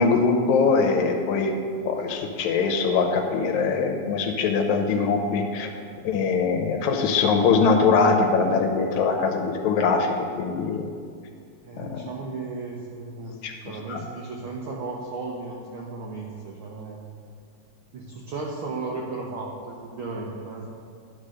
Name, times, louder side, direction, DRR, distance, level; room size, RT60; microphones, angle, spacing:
voice 1, 0.0-5.7 6.0-10.9 11.8-12.1 13.4-13.5 13.9-14.0, left 4 dB, 75° left, 3 dB, 2.1 m, -22 dB
voice 2, 11.6-17.0 17.9-20.7, right 3 dB, 80° right, -2 dB, 1.2 m, -35 dB
11.0 x 4.0 x 6.4 m, 2.2 s
omnidirectional pair, 3.5 m